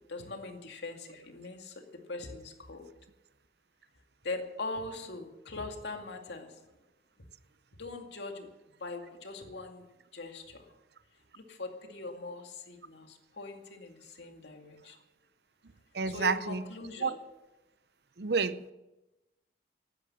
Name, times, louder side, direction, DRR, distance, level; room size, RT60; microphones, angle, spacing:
voice 1, 0.1-2.9 4.2-6.6 7.8-8.5 8.8-9.8 10.1-10.7 11.3-15.0 16.0-17.2, left 3 dB, 70° left, 2.3 m, -41 dB
voice 2, 15.9-16.6 17.0-17.1 18.2-18.7, right 5 dB, 60° right, 0.7 m, -29 dB
15.5 x 13.0 x 6.3 m
head